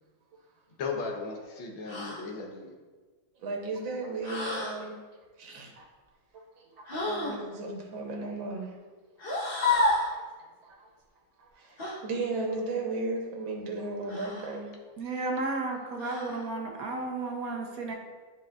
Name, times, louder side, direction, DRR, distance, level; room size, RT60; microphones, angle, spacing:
voice 1, 0.8-2.7 15.9-17.3 17.6-18.0, left 4 dB, 85° left, 2 dB, 1.7 m, -39 dB
sound 1, 1.9-2.3 4.2-4.8 6.9-7.4 9.2-10.1 11.8-12.0 14.1-14.6 16.0-16.5, left 2 dB, 35° left, 1.1 m, -30 dB
voice 2, 3.4-4.9 5.4-5.9 6.6-8.7 9.6-9.8 10.1-10.2 10.6-10.9 11.4-11.8 12.0-14.7, right 3 dB, 90° right, 1 dB, 1.8 m, -35 dB
voice 3, 15.0-17.9, right 3 dB, 60° right, 2 dB, 1.1 m, -33 dB
10.5 x 5.1 x 2.4 m, 1.4 s
omnidirectional pair, 2.1 m